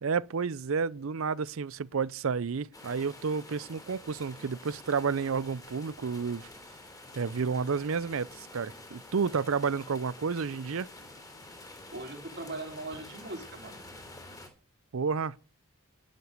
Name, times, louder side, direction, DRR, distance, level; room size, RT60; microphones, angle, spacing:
voice 1, 0.0-6.5 7.2-10.9 14.9-15.4, right 5 dB, 65° right, 0.5 m, -31 dB
sound 1, 2.7-14.5, left 2 dB, 15° left, 3.0 m, -49 dB
voice 2, 11.9-13.8, right 2 dB, 50° right, 3.6 m, -40 dB
11.5 x 9.6 x 6.5 m
head